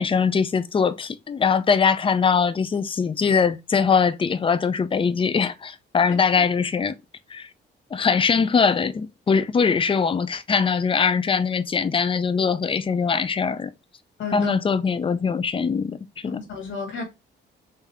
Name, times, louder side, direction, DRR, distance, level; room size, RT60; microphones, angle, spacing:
voice 1, 0.0-7.0 7.3-7.5 7.9-13.7 14.3-16.4, left 5 dB, 25° left, 0.5 m, -22 dB
voice 2, 14.2-14.5 16.3-17.0, left 5 dB, 70° left, 1.8 m, -32 dB
3.6 x 2.7 x 3.4 m
cardioid pair, 90°, 20 cm